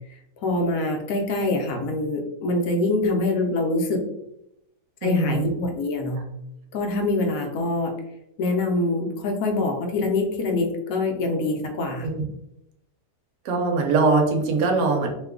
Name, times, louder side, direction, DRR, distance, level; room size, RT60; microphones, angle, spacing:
voice 1, 0.4-4.1 5.0-6.3 6.7-7.9 8.4-12.1, left 2 dB, 65° left, 3 dB, 1.0 m, -24 dB
voice 2, 5.0-5.5 12.0-12.2 13.5-15.1, right 3 dB, 85° right, 2 dB, 1.3 m, -22 dB
3.0 x 2.2 x 3.5 m, 0.83 s
omnidirectional pair, 1.8 m